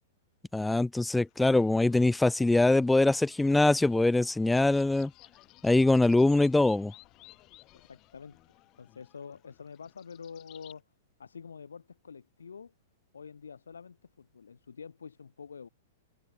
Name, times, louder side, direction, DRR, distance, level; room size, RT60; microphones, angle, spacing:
voice 1, 0.5-5.1 5.6-6.9, left 2 dB, 5° left, 0.3 m, -23 dB
sound 1, 1.2-10.8, left 19 dB, 35° left, 5.0 m, -58 dB
voice 2, 7.7-10.8 11.2-12.7 13.1-15.7, left 6 dB, 85° left, 2.1 m, -47 dB
hypercardioid pair, 120°, 0 cm